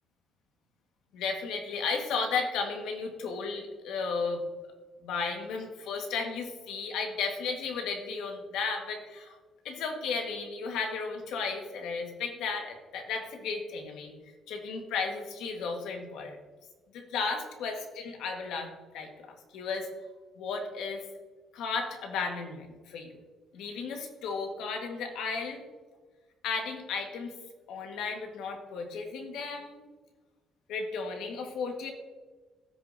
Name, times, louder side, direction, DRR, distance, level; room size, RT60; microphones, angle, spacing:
voice 1, 1.1-4.4 5.0-9.4 9.6-14.2 14.5-16.4 16.9-19.9 20.4-21.0 21.5-23.1 23.5-25.6 26.4-27.3 27.7-29.8 30.7-31.9, left 4 dB, 80° left, 3 dB, 1.6 m, -34 dB
15.5 x 6.6 x 2.7 m, 1.3 s
cardioid pair, 175°, 0 cm